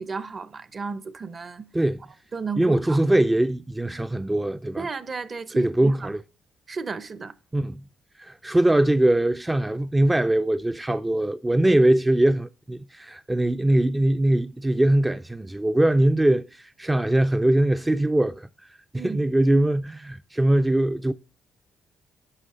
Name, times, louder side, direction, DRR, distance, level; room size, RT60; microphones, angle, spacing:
voice 1, 0.0-1.7 2.3-3.0 4.8-6.1 6.7-7.3 19.0-19.2, right 4 dB, 40° right, 0.7 m, -33 dB
voice 2, 2.6-4.9 5.6-6.2 7.5-7.8 8.2-21.1, right 1 dB, 15° right, 0.4 m, -22 dB
9.9 x 6.0 x 4.9 m
cardioid pair, 90°, 0 cm